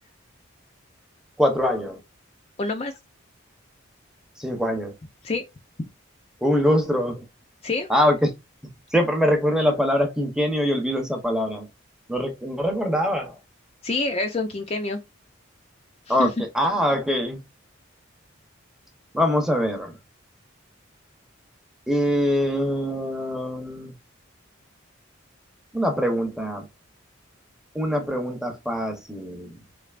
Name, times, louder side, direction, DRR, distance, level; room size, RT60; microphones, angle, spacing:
voice 1, 1.4-2.0 4.4-4.9 6.4-7.3 7.9-8.3 8.9-11.7 12.1-13.4 16.1-17.4 19.1-19.9 21.9-23.9 25.7-26.7 27.7-29.5, equal, 5° right, 0.7 m, -23 dB
voice 2, 2.6-2.9 5.2-5.4 5.8-5.9 7.6-7.9 13.8-15.0 16.1-16.3, left 3 dB, 30° left, 0.4 m, -27 dB
3.7 x 3.3 x 2.4 m
head